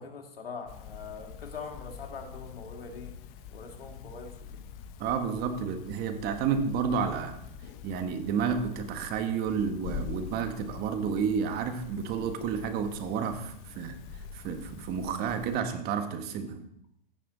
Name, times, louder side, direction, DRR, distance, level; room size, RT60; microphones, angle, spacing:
voice 1, 0.0-3.2 3.5-4.7, left 5 dB, 85° left, 3 dB, 2.2 m, -43 dB
sound 1, 0.7-15.6, left 7 dB, 40° left, 0.9 m, -45 dB
voice 2, 5.0-7.4 7.8-14.0 14.3-16.7, right 6 dB, 35° right, 8 dB, 1.4 m, -31 dB
15.0 x 6.0 x 4.0 m, 0.72 s
hypercardioid pair, 120°, 29 cm